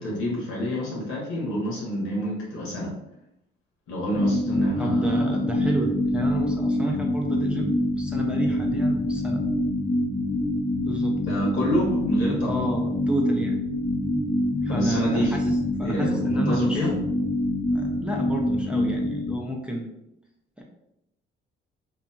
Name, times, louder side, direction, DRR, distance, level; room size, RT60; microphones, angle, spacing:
voice 1, 0.0-2.9 3.9-5.3 11.2-12.6 14.7-15.3 15.8-17.0, equal, 90° left, -4 dB, 1.2 m, -27 dB
sound 1, 4.1-19.4, left 1 dB, 35° left, 0.8 m, -25 dB
voice 2, 4.8-9.4 10.8-11.2 12.4-13.6 14.6-16.9 17.7-19.9 20.6-20.7, right 1 dB, 5° right, -1 dB, 0.5 m, -30 dB
2.7 x 2.6 x 2.3 m, 0.84 s
cardioid pair, 90°, 20 cm